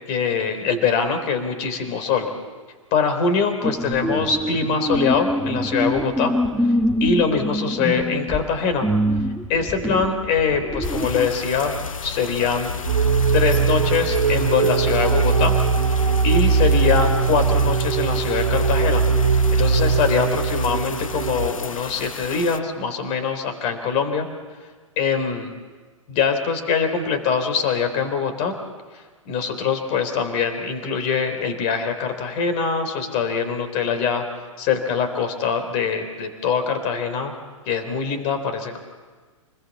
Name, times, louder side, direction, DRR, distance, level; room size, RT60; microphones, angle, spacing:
voice 1, 0.1-2.3 2.9-6.3 6.6-6.7 7.0-8.9 9.5-12.7 13.3-15.5 16.2-19.0 19.5-24.3 25.0-25.5 26.1-28.5 29.3-34.2 34.6-37.3 37.7-38.8, left 5 dB, 40° left, 7 dB, 3.8 m, -23 dB
sound 1, 3.6-11.3, equal, ahead, 1.2 m, -24 dB
sound 2, 10.8-22.6, left 5 dB, 75° left, 1.2 m, -33 dB
sound 3, 12.9-21.5, right 5 dB, 80° right, 1.4 m, -20 dB
29.5 x 21.0 x 7.3 m, 1.4 s
figure-of-eight pair, 115°, 17 cm